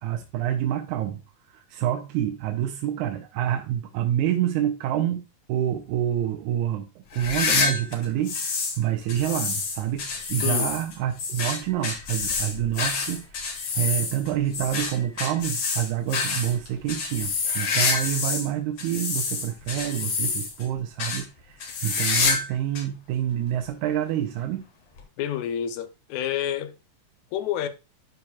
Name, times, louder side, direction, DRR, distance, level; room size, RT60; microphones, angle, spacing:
voice 1, 0.0-5.2 5.5-24.7, right 11 dB, 90° right, 2.1 m, -27 dB
sound 1, 7.1-8.8 9.1-18.5 18.8-20.7 21.0-21.2 21.6-22.5 22.8-22.9 23.6-23.7 25.0-25.1, left 5 dB, 60° left, 2.5 m, -27 dB
voice 2, 25.2-26.7 27.3-27.7, left 10 dB, 75° left, 2.0 m, -28 dB
11.5 x 4.6 x 2.3 m
omnidirectional pair, 3.4 m